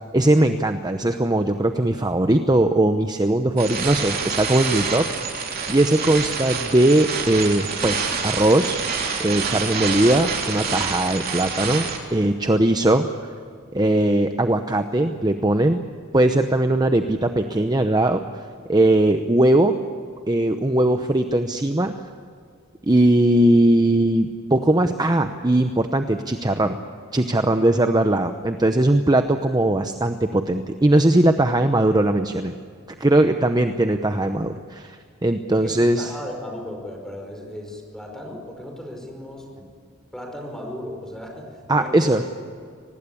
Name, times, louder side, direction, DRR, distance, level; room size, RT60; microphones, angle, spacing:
voice 1, 0.1-5.1 5.4-8.8 9.2-13.1 13.7-15.8 16.1-18.2 18.7-19.7 20.3-21.9 22.8-26.8 27.1-32.5 33.0-36.1 41.7-42.2, right 1 dB, 20° right, 7 dB, 0.8 m, -19 dB
sound 1, 3.6-12.0, right 5 dB, 50° right, 3.6 m, -27 dB
voice 2, 35.5-39.7 40.1-42.2, left 1 dB, 5° left, 2 dB, 5.3 m, -36 dB
24.5 x 19.5 x 8.5 m, 2.1 s
head